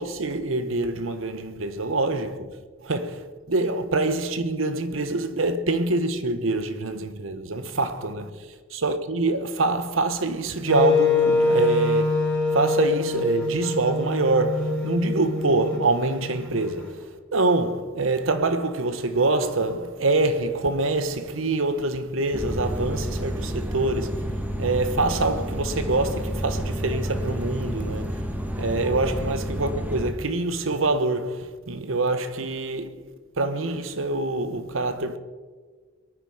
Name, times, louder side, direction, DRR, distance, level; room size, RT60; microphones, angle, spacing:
voice 1, 0.0-2.5 2.8-8.3 8.7-12.2 12.5-17.1 17.3-28.2 28.6-33.1 33.4-35.2, right 2 dB, 85° right, 1.1 m, -25 dB
Wind instrument woodwind instrument, 10.7-16.7, left 3 dB, 5° left, 3.7 m, -24 dB
sound 1, 22.3-30.1, equal, 10° right, 1.5 m, -30 dB
22.0 x 9.4 x 4.9 m
head